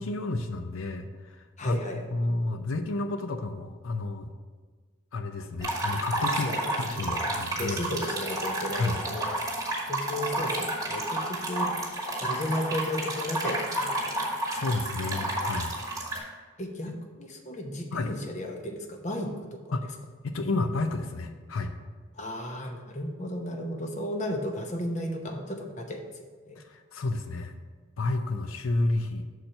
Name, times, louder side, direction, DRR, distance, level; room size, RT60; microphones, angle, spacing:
voice 1, 0.0-1.8 2.1-4.3 5.1-7.9 8.7-9.0 14.1-14.2 14.5-15.7 16.9-17.0 17.9-18.1 19.7-19.9 20.2-21.7 26.6-27.5 28.0-29.3, left 2 dB, 85° left, 7 dB, 0.5 m, -31 dB
voice 2, 1.6-2.0 6.5-9.2 9.9-11.7 12.2-14.3 16.6-19.8 22.2-26.1 26.5-26.6, left 1 dB, 35° left, 3 dB, 0.8 m, -34 dB
sound 1, 5.6-16.2, right 1 dB, 15° right, 1.3 m, -31 dB
6.6 x 4.4 x 6.6 m, 1.5 s
head